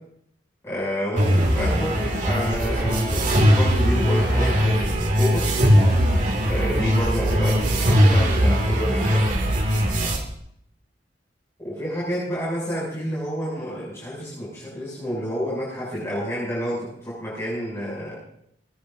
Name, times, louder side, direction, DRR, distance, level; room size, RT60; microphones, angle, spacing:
voice 1, 0.6-5.4 6.5-9.3 11.6-18.2, equal, 15° left, -8 dB, 7.2 m, -29 dB
sound 1, 1.2-10.2, equal, 45° right, 2.5 m, -20 dB
20.0 x 20.0 x 2.7 m, 0.72 s
head